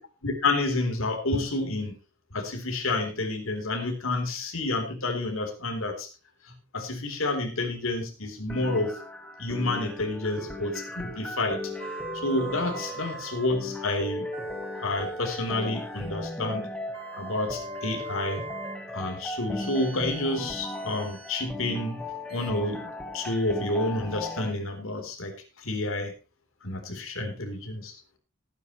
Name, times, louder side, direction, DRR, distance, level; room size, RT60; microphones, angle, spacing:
voice 1, 0.2-2.0 2.3-6.1 6.5-9.0 9.4-11.7 12.1-14.3 14.8-16.7 17.1-18.4 18.9-22.0 22.3-26.1 26.6-28.0, left 2 dB, 70° left, 4 dB, 3.7 m, -29 dB
sound 1, 8.5-24.5, left 2 dB, 5° left, 1.6 m, -37 dB
sound 2, 11.8-13.6 14.3-16.2 16.9-18.9 19.6-21.5 22.3-22.5, right 5 dB, 25° right, 1.6 m, -42 dB
18.5 x 9.8 x 3.1 m, 0.31 s
head